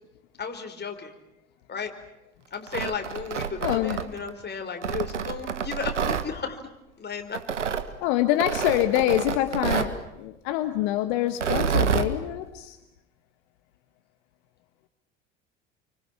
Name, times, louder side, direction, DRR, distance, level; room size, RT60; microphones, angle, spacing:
voice 1, 0.4-1.1 1.7-1.9 2.5-6.6 7.0-7.4, left 5 dB, 30° left, 5 dB, 4.7 m, -34 dB
Tearing, 2.5-4.3 4.8-6.3 7.3-7.9 8.4-10.0 11.3-12.1, right 7 dB, 90° right, 1.6 m, -28 dB
voice 2, 3.6-4.0 8.0-12.8, left 14 dB, 65° left, 9 dB, 1.6 m, -25 dB
29.5 x 25.0 x 7.3 m, 0.93 s
hypercardioid pair, 70°, 35 cm